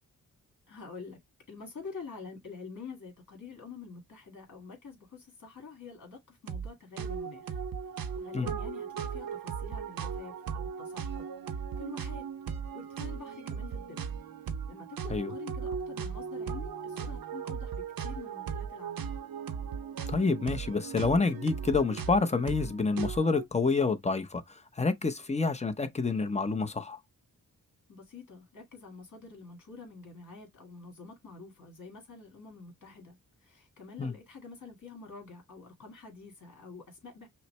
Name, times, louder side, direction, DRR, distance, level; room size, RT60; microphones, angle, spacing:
voice 1, 0.7-1.2 1.5-7.5 8.2-11.2 11.8-12.2 12.7-14.0 14.7-19.1 27.9-33.2 33.4-37.3, left 4 dB, 60° left, 2.1 m, -47 dB
sound 1, 6.5-6.7 7.0-23.4, right 6 dB, 80° right, 0.7 m, -37 dB
voice 2, 20.1-24.4 24.8-27.0 34.0-34.1, left 4 dB, 20° left, 0.7 m, -28 dB
5.7 x 2.1 x 3.2 m
wide cardioid pair, 120°, 34 cm